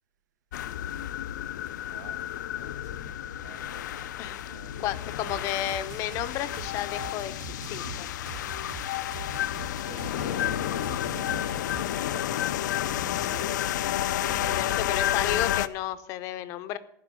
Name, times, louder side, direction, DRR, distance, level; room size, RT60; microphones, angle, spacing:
sound 1, 0.5-15.7, left 12 dB, 85° left, 0.6 m, -31 dB
voice 1, 1.4-2.3 2.6-5.7 9.8-11.6 11.9-13.6 14.2-14.9, right 9 dB, 80° right, 10 dB, 1.3 m, -49 dB
voice 2, 4.8-7.3 7.7-8.1 14.1-16.8, left 12 dB, 30° left, 13 dB, 0.6 m, -32 dB
sound 2, 5.3-12.0, right 9 dB, 50° right, 2.2 m, -43 dB
15.0 x 5.8 x 7.6 m, 0.76 s
supercardioid pair, 165°, 10 cm